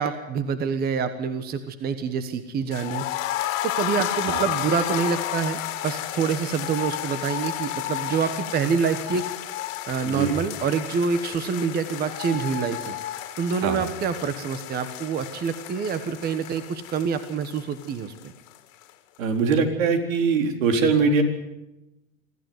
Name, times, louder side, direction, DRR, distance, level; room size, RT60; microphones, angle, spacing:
voice 1, 0.0-3.1 3.6-9.2 9.9-13.0 13.4-18.3, right 6 dB, 25° right, 10 dB, 1.3 m, -26 dB
sound 1, 2.7-18.6 18.8-18.9 19.2-19.3, left 13 dB, 70° left, 2.8 m, -32 dB
voice 2, 10.1-10.4 13.6-13.8 19.2-21.2, right 4 dB, 75° right, 5 dB, 4.2 m, -22 dB
25.0 x 14.5 x 9.5 m, 0.96 s
supercardioid pair, 140°, 41 cm